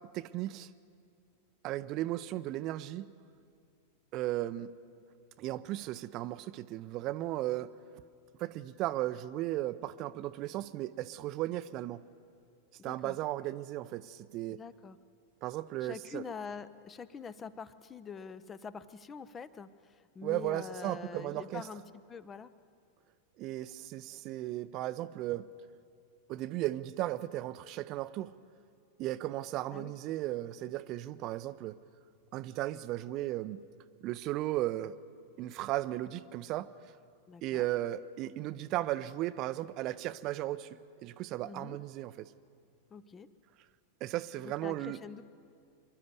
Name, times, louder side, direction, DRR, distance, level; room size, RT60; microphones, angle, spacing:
voice 1, 0.1-0.7 1.6-3.1 4.1-4.7 5.4-7.7 8.4-12.0 12.8-14.6 15.4-16.2 20.2-21.6 23.4-25.4 26.3-28.3 29.0-31.7 32.3-33.6 34.0-34.9 35.4-36.7 37.4-40.7 41.0-42.3 44.0-45.0, right 15 dB, 40° right, 14 dB, 0.6 m, -35 dB
voice 2, 12.8-13.2 14.5-15.0 15.8-22.5 29.7-29.9 37.3-37.7 41.4-41.8 42.9-43.3 44.4-45.2, left 6 dB, 20° left, 15 dB, 0.7 m, -45 dB
25.0 x 12.0 x 9.6 m, 2.3 s
figure-of-eight pair, 90°, 0 cm